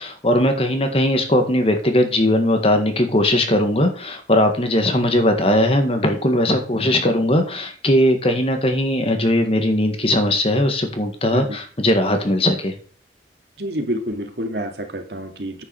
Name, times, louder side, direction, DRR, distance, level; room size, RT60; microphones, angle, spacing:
voice 1, 0.0-12.8, left 1 dB, 30° left, 6 dB, 1.7 m, -19 dB
voice 2, 13.6-15.6, equal, 60° right, 5 dB, 2.1 m, -28 dB
9.8 x 5.6 x 7.0 m, 0.41 s
head